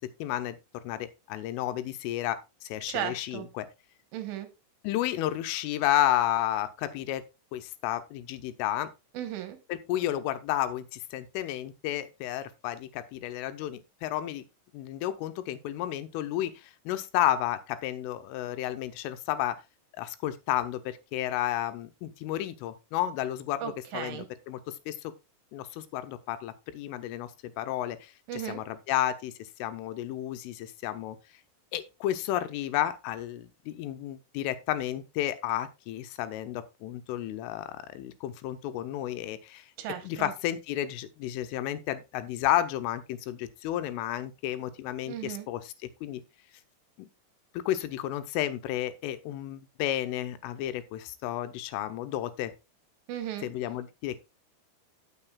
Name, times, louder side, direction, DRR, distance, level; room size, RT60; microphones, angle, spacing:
voice 1, 0.2-0.6 0.8-3.7 4.8-7.2 7.5-8.9 9.7-14.4 14.7-19.6 20.0-24.6 24.9-25.1 25.5-27.3 27.6-31.2 31.7-39.7 40.0-45.6 46.0-46.2 47.0-47.1 47.5-52.5 53.4-54.2, left 13 dB, 85° left, 3.2 m, -32 dB
voice 2, 2.9-3.5 4.1-4.5 9.2-9.6 23.6-24.3 28.3-28.6 39.8-40.3 45.1-45.5 53.1-53.5, right 10 dB, 75° right, 3.5 m, -35 dB
15.5 x 6.4 x 2.3 m
omnidirectional pair, 5.8 m